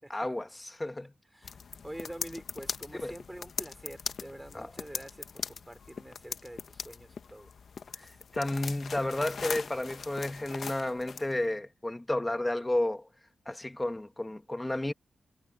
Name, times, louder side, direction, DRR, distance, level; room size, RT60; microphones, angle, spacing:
voice 1, 0.1-1.1 2.9-3.1 4.5-4.7 7.9-13.1 13.4-14.9, left 1 dB, 15° left, 1.8 m, -32 dB
sound 1, 1.4-11.3, left 6 dB, 70° left, 1.2 m, -41 dB
voice 2, 1.8-7.5 8.0-8.2, right 1 dB, 10° right, 5.5 m, -46 dB
cardioid pair, 70°, 0 cm